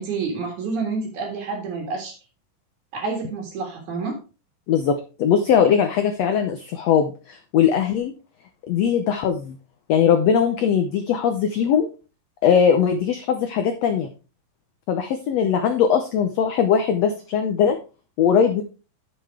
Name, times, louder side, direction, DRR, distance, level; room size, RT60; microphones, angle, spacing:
voice 1, 0.0-2.1 2.9-4.2, right 4 dB, 60° right, -1 dB, 3.2 m, -28 dB
voice 2, 4.7-8.1 8.7-9.6 9.9-11.9 12.4-14.1 14.9-17.8 18.2-18.6, left 7 dB, 85° left, 7 dB, 1.4 m, -20 dB
10.5 x 7.1 x 3.6 m, 0.32 s
omnidirectional pair, 4.1 m